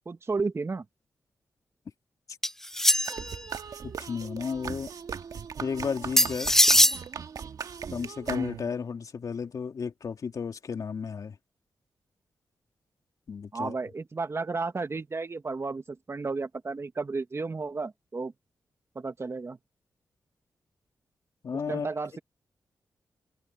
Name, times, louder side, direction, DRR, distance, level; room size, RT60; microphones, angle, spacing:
voice 1, 0.0-0.8 13.5-18.3 18.9-19.6 21.7-22.2, right 4 dB, 40° right, 1.5 m, -33 dB
sound 1, 2.4-3.3 6.2-7.0, left 1 dB, 5° left, 0.6 m, -21 dB
sound 2, 3.0-8.9, right 6 dB, 70° right, 1.7 m, -38 dB
voice 2, 3.8-4.9 5.6-6.6 7.9-11.4 13.3-13.7 21.4-21.9, left 6 dB, 65° left, 2.8 m, -33 dB
cardioid pair, 50°, 6 cm